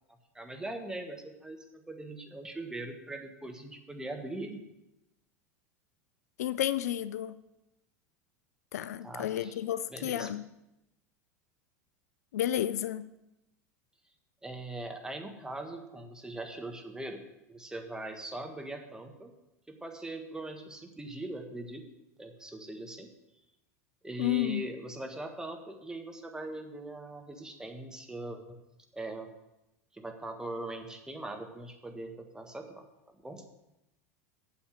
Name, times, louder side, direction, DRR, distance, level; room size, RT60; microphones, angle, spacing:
voice 1, 0.3-4.6 9.0-9.6 9.9-10.3 14.4-17.2 17.5-19.3 19.7-21.8 22.2-23.1 24.0-28.6 28.9-29.3 29.9-33.4, right 2 dB, 10° right, 4 dB, 1.5 m, -41 dB
voice 2, 6.4-7.4 8.7-10.4 12.3-13.0 24.2-24.6, left 12 dB, 75° left, 15 dB, 0.4 m, -31 dB
8.9 x 7.0 x 6.4 m, 0.92 s
hypercardioid pair, 90°, 9 cm